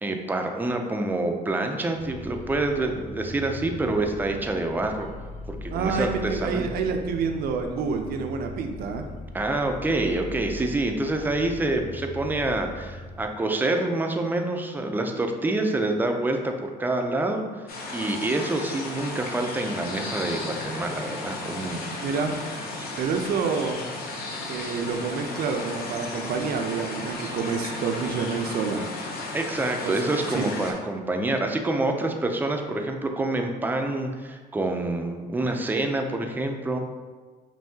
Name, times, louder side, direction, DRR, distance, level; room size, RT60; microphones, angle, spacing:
voice 1, 0.0-5.1 5.5-6.6 9.3-17.4 17.9-21.9 29.3-36.8, right 2 dB, 10° right, 4 dB, 0.4 m, -27 dB
sound 1, 1.9-13.3, left 2 dB, 45° left, 0.4 m, -39 dB
voice 2, 5.7-9.1 22.0-22.3 23.0-23.8 24.5-28.9 29.8-30.0 30.3-30.5, right 5 dB, 65° right, 5 dB, 0.5 m, -28 dB
sound 2, 17.7-30.7, left 2 dB, 65° left, 0.8 m, -34 dB
5.6 x 2.7 x 2.7 m, 1.4 s
cardioid pair, 110°, 17 cm